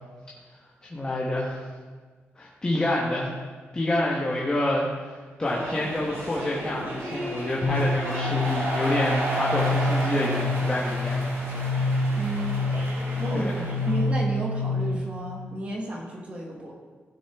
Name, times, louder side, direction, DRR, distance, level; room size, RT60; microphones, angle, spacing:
voice 1, 0.9-1.6 2.4-3.4 3.7-11.2 11.8-12.0 13.3-13.6, left 1 dB, 20° left, -5 dB, 1.1 m, -28 dB
sound 1, 5.4-14.2, right 1 dB, 65° right, 2.3 m, -32 dB
sound 2, 7.6-15.2, left 2 dB, 60° left, 1.9 m, -27 dB
voice 2, 12.1-12.6 13.2-13.5 13.8-16.7, right 1 dB, 30° right, -1 dB, 1.4 m, -32 dB
16.0 x 6.2 x 3.5 m, 1.4 s
wide cardioid pair, 175°, 5 cm